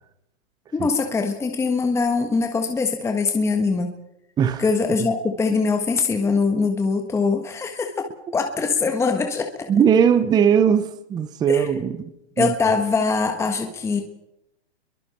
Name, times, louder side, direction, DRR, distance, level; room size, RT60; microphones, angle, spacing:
voice 1, 0.7-3.9 4.6-9.7 11.5-11.7 12.4-14.0, left 4 dB, 10° left, 1.5 m, -22 dB
voice 2, 9.7-12.1 12.4-12.5, right 7 dB, 10° right, 0.8 m, -19 dB
28.5 x 22.5 x 4.4 m
hypercardioid pair, 145°, 33 cm